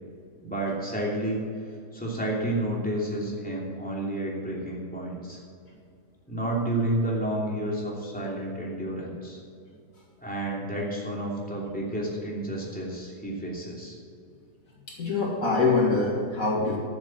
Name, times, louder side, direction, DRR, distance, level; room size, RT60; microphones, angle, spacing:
voice 1, 0.4-1.4 1.9-5.4 6.3-9.4 10.2-13.9, right 1 dB, 5° left, -4 dB, 2.8 m, -30 dB
voice 2, 14.9-16.8, left 3 dB, 55° left, -2 dB, 2.1 m, -24 dB
13.5 x 7.6 x 7.6 m, 2.4 s
omnidirectional pair, 1.8 m